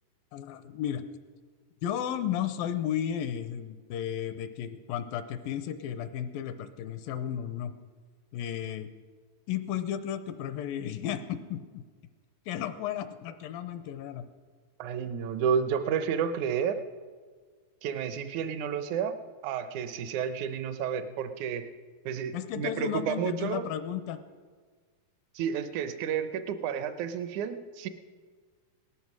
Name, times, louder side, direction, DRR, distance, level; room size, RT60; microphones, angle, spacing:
voice 1, 0.3-1.0 1.8-7.7 8.3-8.9 9.5-11.8 12.5-14.3 22.3-24.2, left 10 dB, 80° left, 11 dB, 2.4 m, -33 dB
voice 2, 14.8-16.8 17.8-19.2 19.4-21.7 22.0-23.6 25.3-27.9, right 7 dB, 75° right, 10 dB, 1.8 m, -31 dB
18.0 x 13.0 x 6.1 m, 1.5 s
omnidirectional pair, 4.3 m